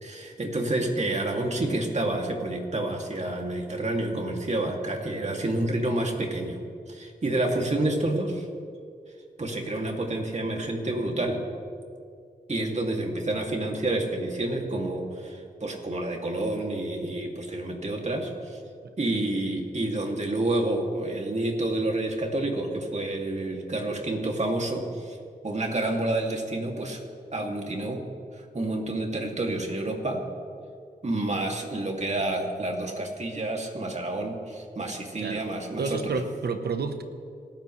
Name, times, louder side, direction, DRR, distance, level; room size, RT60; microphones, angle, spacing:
voice 1, 0.0-6.6 6.9-8.5 9.4-11.4 12.5-18.6 19.0-25.2 25.4-27.0 27.3-28.0 28.3-30.2 31.0-36.1, right 2 dB, 45° right, 1 dB, 2.7 m, -29 dB
voice 2, 35.8-37.0, right 4 dB, 90° right, 8 dB, 1.1 m, -30 dB
27.0 x 13.5 x 3.3 m, 2.3 s
cardioid pair, 60°, 16 cm